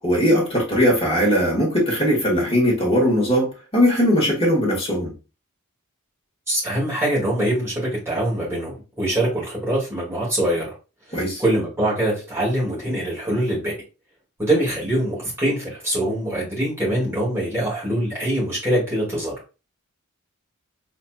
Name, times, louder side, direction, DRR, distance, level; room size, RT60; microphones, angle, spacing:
voice 1, 0.0-5.1 11.1-11.4, equal, 25° left, -4 dB, 2.2 m, -19 dB
voice 2, 6.5-10.7 11.1-13.7 14.4-19.3, right 1 dB, 10° right, -7 dB, 2.4 m, -23 dB
4.2 x 4.0 x 2.4 m, 0.31 s
head